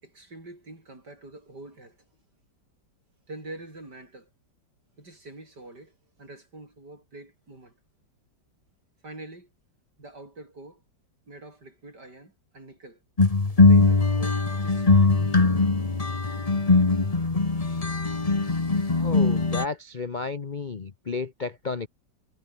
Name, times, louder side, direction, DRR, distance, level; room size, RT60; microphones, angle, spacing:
voice 1, 0.0-2.1 3.3-4.3 5.0-7.7 9.0-9.5 10.0-10.8 11.3-13.0 13.6-15.1, right 2 dB, 60° right, 8.3 m, -45 dB
sound 1, 13.2-19.6, left 3 dB, 20° left, 1.4 m, -21 dB
voice 2, 19.0-21.9, left 4 dB, 35° left, 0.8 m, -32 dB
omnidirectional pair, 2.0 m